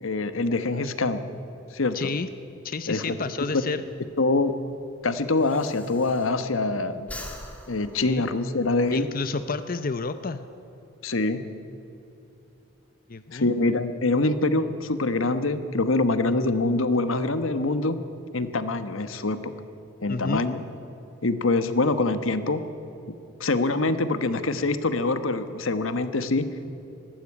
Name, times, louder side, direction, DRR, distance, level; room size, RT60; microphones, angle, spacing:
voice 1, 0.0-1.2 1.7-2.1 2.9-3.1 4.2-4.6 5.0-7.1 7.7-9.1 11.0-11.4 13.3-18.0 18.3-19.5 20.0-20.6 21.2-22.6 23.4-26.5, left 2 dB, 90° left, 11 dB, 1.2 m, -24 dB
voice 2, 1.9-2.3 2.6-3.8 8.0-8.3 8.9-10.4 13.1-13.5 20.1-20.4, left 4 dB, 45° left, 11 dB, 0.7 m, -30 dB
Breathing, 4.0-6.7 7.0-8.9, left 1 dB, 5° left, 2.0 m, -43 dB
19.5 x 15.0 x 9.7 m, 2.9 s
head